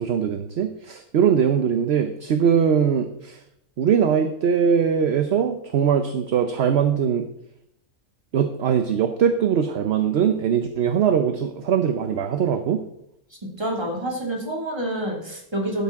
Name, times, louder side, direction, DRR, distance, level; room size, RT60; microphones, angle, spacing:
voice 1, 0.0-3.4 3.8-7.3 8.3-12.8, right 7 dB, 55° right, 8 dB, 0.9 m, -21 dB
voice 2, 13.6-15.8, right 1 dB, 20° right, -1 dB, 2.3 m, -27 dB
12.0 x 9.8 x 3.6 m, 0.78 s
omnidirectional pair, 1.4 m